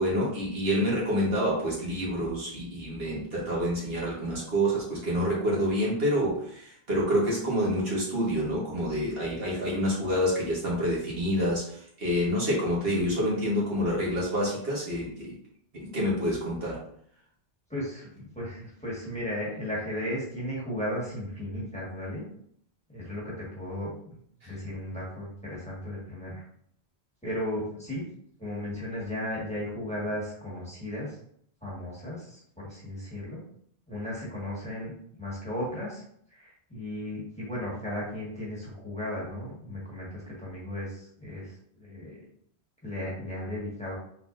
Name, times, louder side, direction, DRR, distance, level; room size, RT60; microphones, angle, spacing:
voice 1, 0.0-15.3 15.7-16.8 24.4-24.5, equal, 65° right, -5 dB, 1.7 m, -28 dB
voice 2, 17.7-22.2 22.9-24.2 24.4-26.4 27.2-28.0 28.4-31.2 31.6-33.4 33.9-34.9 35.2-36.0 36.3-42.2 42.8-43.9, left 1 dB, 5° left, -6 dB, 1.5 m, -35 dB
4.2 x 4.0 x 2.5 m, 0.66 s
omnidirectional pair, 1.1 m